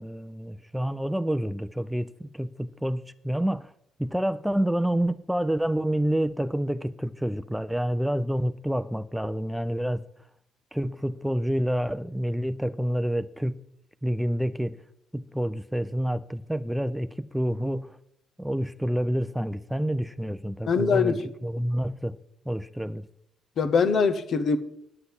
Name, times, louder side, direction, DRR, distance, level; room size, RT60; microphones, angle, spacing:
voice 1, 0.0-3.7 4.0-10.0 10.7-13.6 14.0-14.8 15.1-18.0 18.4-22.2 22.5-23.1, equal, 5° right, 0.5 m, -28 dB
voice 2, 20.7-21.3 23.6-24.6, left 5 dB, 60° left, 1.1 m, -23 dB
9.7 x 7.9 x 8.6 m
cardioid pair, 90°, 0 cm